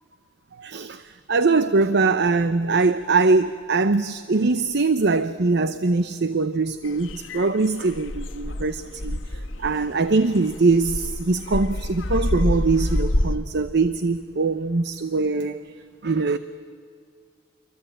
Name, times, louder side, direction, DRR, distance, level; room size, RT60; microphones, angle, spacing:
voice 1, 0.6-15.6 16.0-16.4, right 3 dB, 60° right, 0.8 m, -22 dB
sound 1, 6.8-13.4, left 1 dB, 75° left, 1.4 m, -28 dB
28.0 x 24.0 x 9.0 m
head